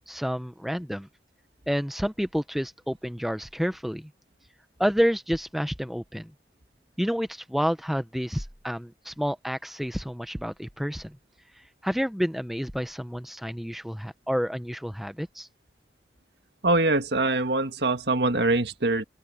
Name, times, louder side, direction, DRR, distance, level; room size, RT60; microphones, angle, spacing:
voice 1, 0.1-1.1 1.7-4.1 4.8-6.3 7.0-11.2 11.6-15.5, equal, ahead, 0.7 m, -29 dB
voice 2, 16.6-19.0, right 2 dB, 70° right, 1.7 m, -23 dB
open air
head